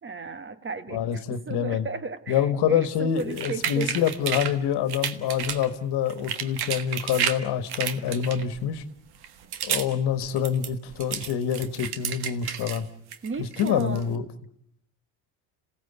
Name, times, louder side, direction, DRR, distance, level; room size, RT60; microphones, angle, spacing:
voice 1, 0.0-3.9 13.2-14.1, right 4 dB, 30° right, 12 dB, 1.4 m, -34 dB
voice 2, 0.9-1.9 2.3-8.8 9.6-12.9 13.4-14.2, left 8 dB, 70° left, 12 dB, 1.6 m, -26 dB
sound 1, 3.2-4.5 4.9-5.7 6.1-7.4 7.7-8.6 9.1-9.9 10.2-12.8 13.1-14.0, right 9 dB, 65° right, 1.6 m, -31 dB
27.0 x 17.0 x 8.2 m, 0.70 s
cardioid pair, 95°, 41 cm